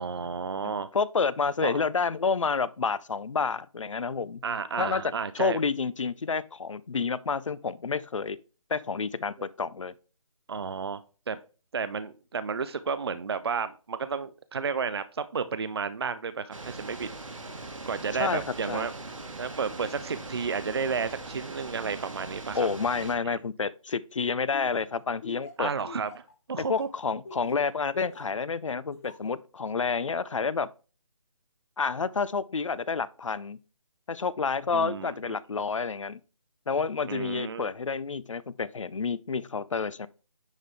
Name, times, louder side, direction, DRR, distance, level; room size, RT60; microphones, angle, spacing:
voice 1, 0.0-0.9 1.6-1.8 4.4-5.6 10.5-11.4 11.7-17.1 17.9-18.9 19.4-22.7 25.6-26.2 26.5-26.9 34.7-35.4 37.0-37.7, right 5 dB, 45° right, 0.4 m, -32 dB
voice 2, 0.9-4.4 4.8-8.4 8.7-9.9 18.1-18.9 22.5-25.7 26.7-30.7 31.8-33.6 34.1-36.2 36.7-40.1, left 5 dB, 60° left, 0.5 m, -29 dB
sound 1, 16.5-23.1, right 2 dB, 65° right, 1.4 m, -41 dB
Laughter, 24.5-28.4 28.9-29.3, left 4 dB, 25° left, 0.8 m, -45 dB
9.7 x 3.7 x 3.3 m
figure-of-eight pair, 150°, 18 cm